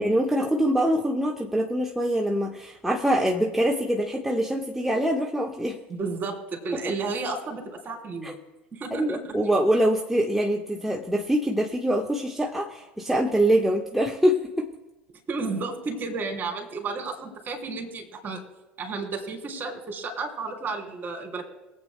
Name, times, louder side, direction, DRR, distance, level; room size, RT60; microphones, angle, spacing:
voice 1, 0.0-5.8 6.7-6.8 8.2-8.3 8.9-14.7, equal, 5° right, -1 dB, 1.3 m, -24 dB
voice 2, 5.9-8.4 8.7-9.3 15.3-18.4 18.8-21.5, right 3 dB, 35° right, 3 dB, 3.1 m, -32 dB
23.5 x 8.4 x 2.2 m, 0.99 s
figure-of-eight pair, 70°, 6 cm